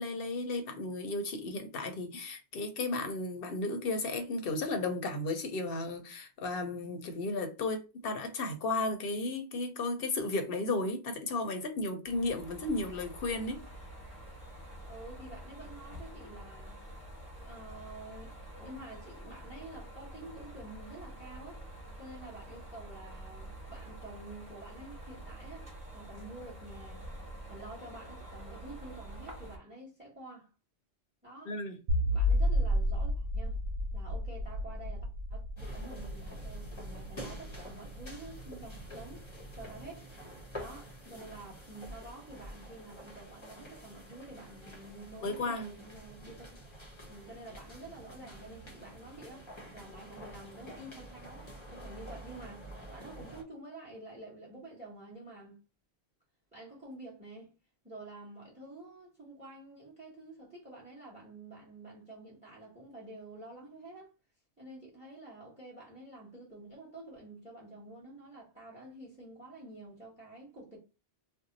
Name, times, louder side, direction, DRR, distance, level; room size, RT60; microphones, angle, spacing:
voice 1, 0.0-13.6 31.5-31.8 45.2-45.7, left 2 dB, 60° left, 0.9 m, -34 dB
sound 1, 12.0-29.6, right 1 dB, 30° right, 1.1 m, -47 dB
voice 2, 14.8-16.8 17.3-18.3 18.6-21.6 22.0-27.1 27.5-30.5 31.2-31.5 32.1-33.6 33.9-35.0 35.3-39.3 39.5-40.1 40.6-46.6 47.1-55.6 56.5-57.5 57.8-64.1 64.6-70.8, right 2 dB, 5° right, 1.1 m, -49 dB
sound 2, 31.9-39.1, left 1 dB, 75° right, 0.8 m, -32 dB
sound 3, 35.6-53.4, right 1 dB, 30° left, 0.8 m, -48 dB
2.7 x 2.1 x 3.9 m
omnidirectional pair, 1.1 m